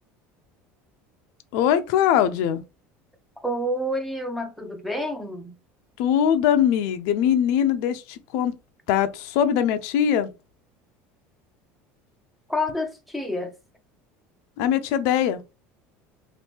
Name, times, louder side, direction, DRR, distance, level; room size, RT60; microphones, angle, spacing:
voice 1, 1.5-2.6 6.0-8.5 8.9-10.3 14.6-15.4, left 9 dB, 70° left, 0.4 m, -21 dB
voice 2, 3.4-5.5 12.5-13.5, left 1 dB, ahead, 0.5 m, -28 dB
2.8 x 2.5 x 3.4 m
cardioid pair, 155°, 6 cm